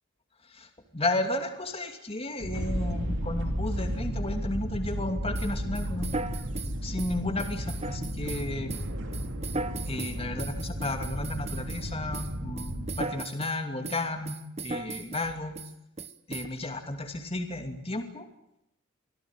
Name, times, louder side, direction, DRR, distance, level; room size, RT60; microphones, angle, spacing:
voice 1, 0.9-6.1 6.6-8.9 9.8-14.4 14.6-15.5 16.3-18.3, left 2 dB, 30° left, 5 dB, 2.8 m, -33 dB
sound 1, 2.4-13.0, equal, 65° right, 3.0 m, -33 dB
sound 2, 5.3-11.9 12.1-13.6 13.8-15.3 15.6-15.7 16.0-16.5, right 3 dB, 30° right, 1.2 m, -37 dB
25.5 x 17.5 x 9.1 m, 0.80 s
head